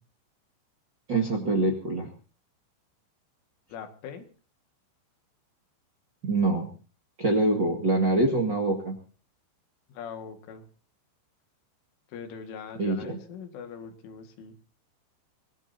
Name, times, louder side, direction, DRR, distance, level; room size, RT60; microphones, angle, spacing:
voice 1, 1.1-2.1 6.2-6.7 7.2-9.0 12.8-13.2, right 2 dB, 45° right, 0 dB, 1.5 m, -25 dB
voice 2, 3.7-4.3 9.9-10.7 12.1-14.5, left 6 dB, 85° left, 6 dB, 4.4 m, -41 dB
25.0 x 18.0 x 2.8 m, 0.38 s
omnidirectional pair, 5.4 m